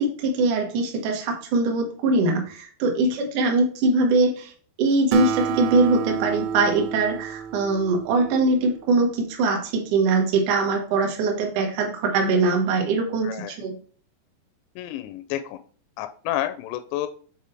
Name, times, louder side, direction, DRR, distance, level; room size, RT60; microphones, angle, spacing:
voice 1, 0.0-4.5 4.8-13.8, right 3 dB, 60° right, 1 dB, 2.3 m, -22 dB
Acoustic guitar, 5.1-8.8, right 8 dB, 80° right, 2.5 m, -30 dB
voice 2, 13.2-13.6 14.8-15.6 16.0-17.1, left 13 dB, 80° left, 9 dB, 2.6 m, -30 dB
7.4 x 3.5 x 4.4 m, 0.43 s
omnidirectional pair, 5.1 m